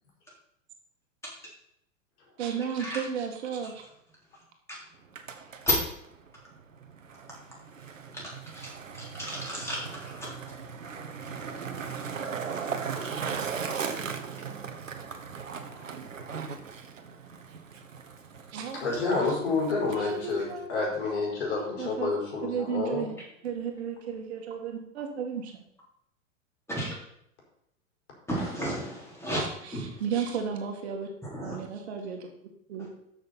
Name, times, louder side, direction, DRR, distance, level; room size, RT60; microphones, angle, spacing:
voice 1, 2.4-3.8 18.5-19.4 19.9-20.7 21.6-22.1 22.4-23.2 23.4-25.6 29.3-31.1 31.4-32.3 32.7-32.9, right 7 dB, 55° right, 3 dB, 1.9 m, -34 dB
Skateboard, 4.9-20.7, right 6 dB, 75° right, 1.2 m, -38 dB
voice 2, 8.9-10.3 26.8-26.9 28.3-29.4 29.7-29.9 31.3-31.6, left 1 dB, 5° left, -5 dB, 4.1 m, -32 dB
voice 3, 18.7-23.1, left 3 dB, 55° left, -2 dB, 4.5 m, -29 dB
13.0 x 6.4 x 4.2 m, 0.73 s
figure-of-eight pair, 95°, 39 cm